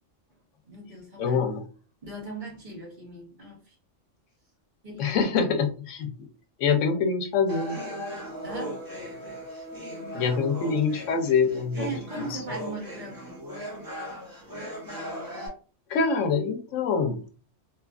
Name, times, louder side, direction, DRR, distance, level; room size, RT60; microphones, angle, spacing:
voice 1, 0.7-1.4 2.0-3.8 4.8-5.2 8.4-8.8 11.8-13.4, right 2 dB, 45° right, -2 dB, 1.0 m, -38 dB
voice 2, 1.2-1.6 5.0-6.1 6.6-7.8 10.1-12.4 15.9-17.2, left 5 dB, 85° left, 5 dB, 0.9 m, -25 dB
sound 1, 7.5-15.5, equal, 20° right, 0.8 m, -38 dB
2.9 x 2.3 x 2.3 m, 0.36 s
omnidirectional pair, 1.3 m